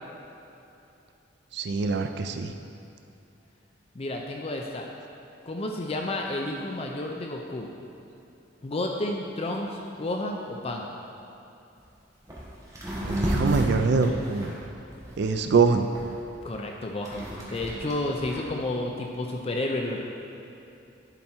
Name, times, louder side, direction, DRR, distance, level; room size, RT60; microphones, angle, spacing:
voice 1, 1.5-2.5 13.0-14.5 15.2-15.9, right 4 dB, 65° right, 7 dB, 0.4 m, -24 dB
voice 2, 4.0-4.9 5.5-7.7 8.6-10.8 16.4-20.0, left 2 dB, 35° left, 1 dB, 0.5 m, -31 dB
sound 1, 11.8-11.9 12.2-12.4 12.7-15.4 15.9-18.5, equal, 20° right, 1.4 m, -32 dB
11.0 x 4.3 x 4.4 m, 2.9 s
head